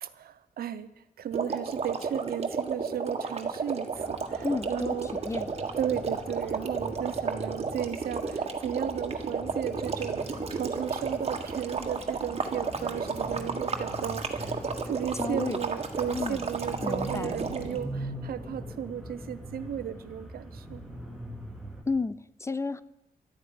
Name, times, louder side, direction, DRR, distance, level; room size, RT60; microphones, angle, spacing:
voice 1, 0.0-0.9 1.2-5.1 5.8-20.8, right 9 dB, 75° right, 14 dB, 0.9 m, -35 dB
sound 1, 1.3-17.8, right 5 dB, 40° right, 1.6 m, -32 dB
sound 2, 3.9-21.8, right 1 dB, 5° right, 2.4 m, -42 dB
voice 2, 4.4-5.5 15.2-15.6 16.1-16.5 16.8-17.3 21.9-22.8, left 3 dB, 20° left, 17 dB, 0.5 m, -32 dB
12.0 x 10.0 x 9.7 m, 0.98 s
wide cardioid pair, 125°, 16 cm